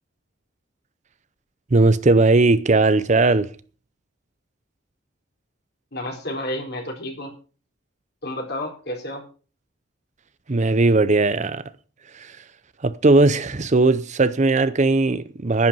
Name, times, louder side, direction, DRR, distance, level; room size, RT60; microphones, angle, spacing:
voice 1, 1.7-3.5 10.5-11.6 12.1-12.4 12.8-15.7, right 3 dB, 35° right, 0.6 m, -18 dB
voice 2, 5.9-7.3 8.2-9.2, left 1 dB, 55° left, 4.1 m, -30 dB
10.5 x 10.5 x 5.5 m
head